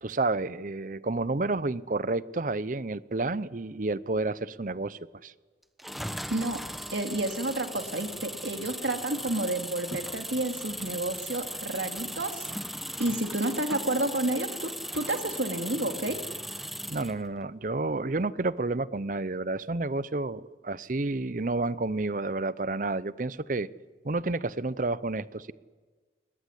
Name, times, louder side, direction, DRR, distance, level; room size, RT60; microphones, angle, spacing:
voice 1, 0.0-5.3 16.9-23.7 24.0-25.5, right 2 dB, 45° right, 17 dB, 0.7 m, -30 dB
sound 1, 5.8-17.2, equal, ahead, 0.9 m, -38 dB
voice 2, 6.3-6.6 6.9-12.5 13.0-16.2, right 1 dB, 80° right, 5 dB, 2.6 m, -30 dB
21.5 x 21.0 x 9.9 m, 1.4 s
head